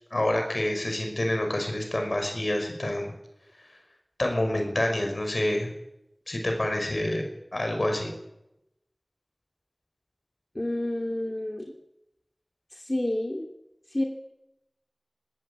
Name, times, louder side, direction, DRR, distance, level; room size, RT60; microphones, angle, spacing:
voice 1, 0.1-3.1 4.2-5.7 6.3-8.1, left 1 dB, 75° left, 3 dB, 6.1 m, -27 dB
voice 2, 10.5-11.7 12.7-13.5 13.9-14.0, left 1 dB, 40° left, 2 dB, 2.8 m, -29 dB
20.0 x 19.5 x 8.9 m, 0.88 s
wide cardioid pair, 40°, 0 cm